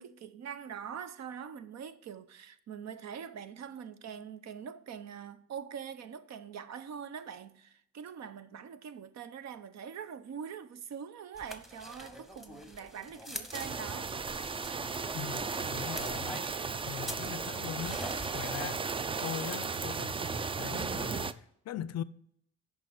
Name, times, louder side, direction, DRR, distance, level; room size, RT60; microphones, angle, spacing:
voice 1, 0.0-14.2, right 7 dB, 60° right, 0.7 m, -43 dB
sound 1, 11.4-18.6, left 1 dB, ahead, 1.0 m, -46 dB
sound 2, 13.5-21.3, right 5 dB, 20° right, 0.3 m, -35 dB
voice 2, 15.1-16.4 16.9-18.0 18.3-18.9 19.2-22.0, left 11 dB, 60° left, 0.5 m, -40 dB
6.6 x 5.1 x 6.0 m
cardioid pair, 90°, 30 cm